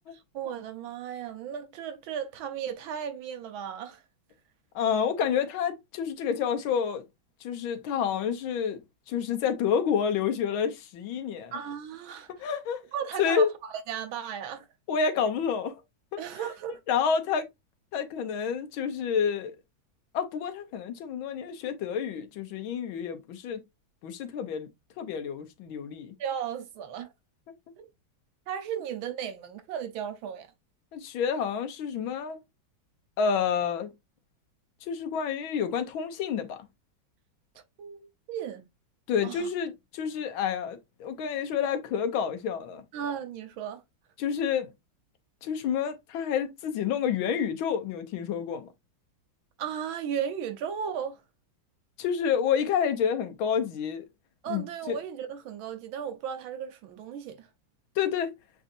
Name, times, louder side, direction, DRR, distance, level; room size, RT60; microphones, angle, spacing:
voice 1, 0.1-4.0 11.5-12.3 12.9-14.6 16.2-16.8 26.2-27.1 27.8-27.9 28.5-30.5 37.8-38.6 39.2-39.5 42.9-43.8 49.6-51.2 54.4-57.5, right 8 dB, 85° right, 1.6 m, -35 dB
voice 2, 4.7-7.0 7.4-8.8 9.1-11.5 12.4-12.8 13.2-13.5 14.9-15.7 16.1-16.2 16.9-17.5 17.9-19.6 20.1-23.6 24.0-24.7 25.0-26.1 30.9-32.4 33.2-33.9 34.8-36.6 39.1-42.8 44.2-44.7 45.4-48.7 52.0-54.0 54.5-55.0 58.0-58.3, left 7 dB, 80° left, 1.6 m, -29 dB
7.2 x 2.7 x 2.6 m
omnidirectional pair, 2.2 m